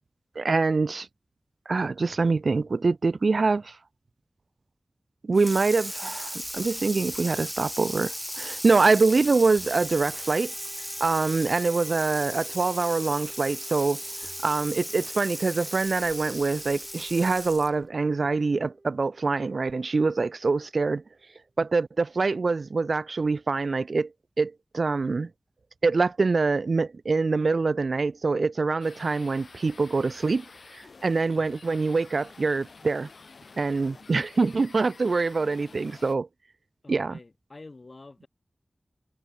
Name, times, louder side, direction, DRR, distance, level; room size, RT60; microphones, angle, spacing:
voice 1, 0.4-1.1 1.7-3.8 5.2-10.5 11.0-14.0 14.4-21.0 21.6-24.1 24.4-25.3 25.8-30.4 30.7-33.1 33.6-36.3 36.9-37.2, right 4 dB, 75° right, 0.3 m, -25 dB
Water tap faucet / Sink (filling or washing), 5.3-17.8, equal, ahead, 0.4 m, -36 dB
sound 1, 9.7-21.1, right 2 dB, 35° right, 1.6 m, -54 dB
sound 2, 28.8-36.2, left 4 dB, 85° left, 2.3 m, -50 dB
voice 2, 36.8-38.3, left 3 dB, 50° left, 1.5 m, -47 dB
wide cardioid pair, 65°, 0 cm